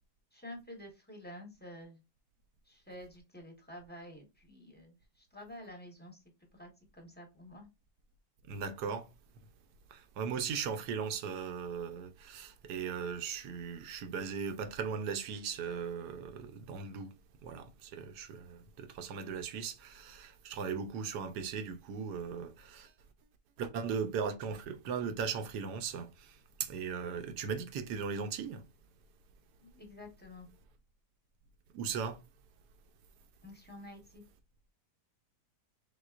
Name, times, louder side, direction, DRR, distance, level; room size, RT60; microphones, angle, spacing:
voice 1, 0.3-2.0 2.7-6.2 6.5-7.7 29.6-30.5 33.4-34.2, left 1 dB, 10° left, 0.8 m, -50 dB
voice 2, 8.5-9.1 9.4-9.5 9.9-17.1 17.4-22.9 23.6-28.6 31.7-32.2, right 6 dB, 80° right, 1.3 m, -38 dB
5.1 x 3.7 x 2.4 m
omnidirectional pair, 1.8 m